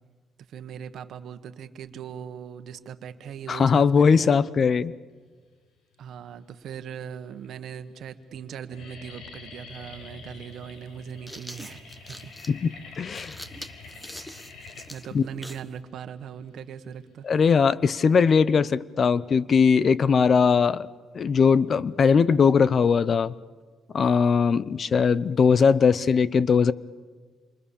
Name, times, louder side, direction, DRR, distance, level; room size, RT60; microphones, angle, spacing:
voice 1, 0.5-4.3 6.0-12.7 14.9-17.3, right 8 dB, 70° right, 1.4 m, -40 dB
voice 2, 3.5-4.9 12.5-12.7 13.0-13.3 15.1-15.2 17.2-20.9 21.1-23.3 23.9-26.7, left 6 dB, 45° left, 0.7 m, -20 dB
sound 1, 6.1-6.7 7.4-7.5 7.7-8.1 8.4-17.3, left 4 dB, 75° left, 4.8 m, -46 dB
sound 2, 9.9-10.0 10.9-15.7, equal, 10° left, 1.5 m, -43 dB
28.5 x 23.5 x 7.1 m
cardioid pair, 90°, 0 cm